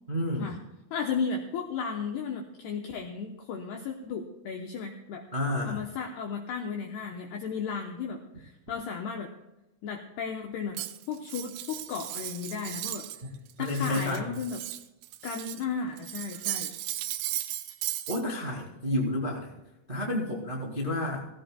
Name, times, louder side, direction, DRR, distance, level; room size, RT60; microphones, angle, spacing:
voice 1, 0.1-0.5 5.3-5.8 13.6-14.3 18.1-19.5 19.9-21.2, left 1 dB, 65° right, -3 dB, 0.5 m, -30 dB
voice 2, 0.9-5.2 5.6-9.3 9.8-13.1 13.6-14.6 15.2-16.7, left 5 dB, 85° left, 2 dB, 2.3 m, -34 dB
Cutlery silverware, 10.8-13.2 13.5-15.7 16.0-18.2, right 14 dB, 85° right, 3.2 m, -36 dB
17.5 x 16.5 x 2.3 m, 0.98 s
omnidirectional pair, 6.0 m